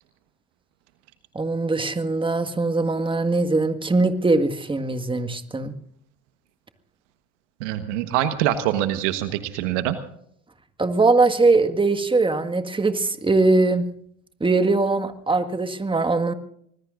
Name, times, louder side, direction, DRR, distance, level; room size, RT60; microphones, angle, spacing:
voice 1, 1.4-5.8 10.8-13.9 14.4-16.3, right 3 dB, 15° right, 8 dB, 1.7 m, -21 dB
voice 2, 7.6-10.0, right 12 dB, 75° right, 10 dB, 1.4 m, -24 dB
25.5 x 20.5 x 2.6 m, 0.68 s
hypercardioid pair, 75°, 36 cm